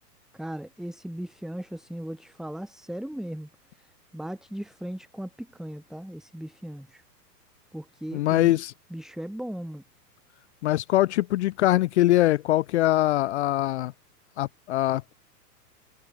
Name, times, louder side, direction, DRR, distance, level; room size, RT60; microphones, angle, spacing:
voice 1, 0.3-3.5 3.8-7.0 7.7-8.6 8.9-9.8, right 1 dB, ahead, 2.4 m, -37 dB
voice 2, 8.1-8.7 10.6-13.9 14.4-15.1, left 15 dB, 45° left, 0.5 m, -23 dB
figure-of-eight pair, 105°, 48 cm